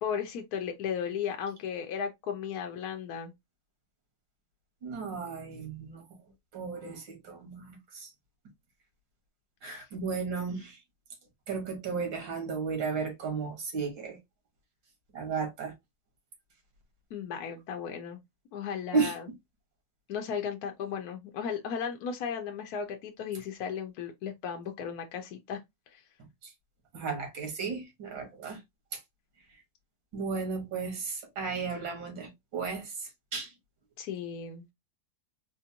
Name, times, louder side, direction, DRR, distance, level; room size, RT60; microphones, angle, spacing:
voice 1, 0.0-3.3 9.6-9.9 17.1-18.2 18.5-19.2 20.1-25.6 25.9-26.0 34.0-34.7, left 7 dB, 70° left, 1.0 m, -35 dB
voice 2, 4.8-6.0 6.5-8.1 9.6-10.8 11.5-14.2 15.1-15.7 18.9-19.1 26.4-26.5 26.9-28.6 28.9-29.0 30.1-33.5, right 5 dB, 80° right, 2.1 m, -34 dB
4.3 x 2.5 x 2.7 m
omnidirectional pair, 2.0 m